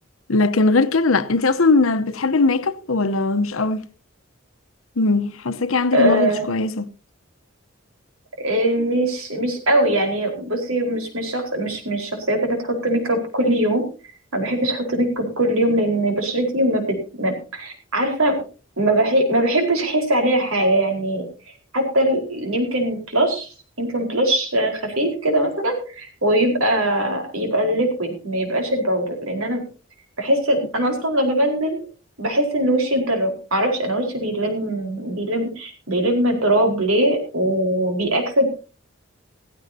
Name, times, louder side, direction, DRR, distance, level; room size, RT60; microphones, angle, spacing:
voice 1, 0.3-3.8 5.0-6.9, left 3 dB, 75° left, 0.9 m, -20 dB
voice 2, 5.9-6.5 8.4-13.8 14.3-18.4 18.8-21.2 21.7-23.5 23.8-29.6 30.2-31.9 32.2-38.5, right 1 dB, 85° right, 4.6 m, -21 dB
16.5 x 15.5 x 2.8 m
head